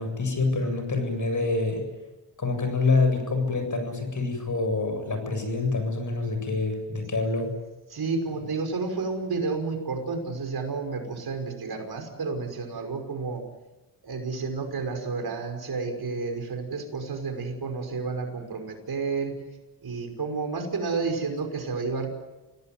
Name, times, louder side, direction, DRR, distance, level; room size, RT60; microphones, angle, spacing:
voice 1, 0.0-1.9 2.4-7.5, left 3 dB, 45° left, 7 dB, 7.9 m, -26 dB
voice 2, 7.9-13.4 14.0-19.4 19.8-22.1, right 4 dB, 55° right, 5 dB, 5.6 m, -31 dB
29.0 x 18.0 x 9.6 m, 1.1 s
cardioid pair, 95°, 43 cm